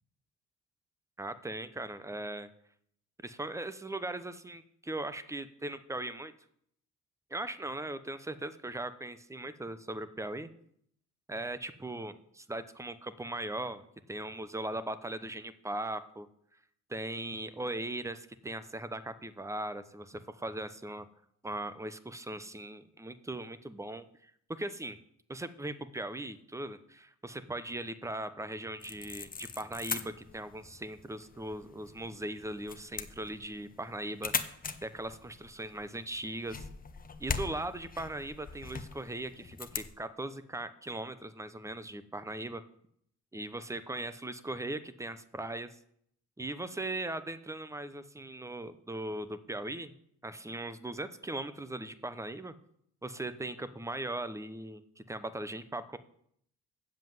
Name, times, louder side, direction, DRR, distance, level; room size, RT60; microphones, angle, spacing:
voice 1, 1.2-2.5 3.2-6.3 7.3-10.5 11.3-13.8 14.1-16.3 16.9-21.1 21.4-25.0 25.3-34.3 34.8-36.7 37.2-42.6 43.3-45.7 46.4-49.9 50.2-52.5 53.0-56.0, right 1 dB, 10° right, 13 dB, 0.8 m, -39 dB
sound 1, 28.8-39.9, left 5 dB, 30° left, 0.9 m, -41 dB
7.5 x 7.5 x 7.7 m, 0.69 s
cardioid pair, 90°, 30 cm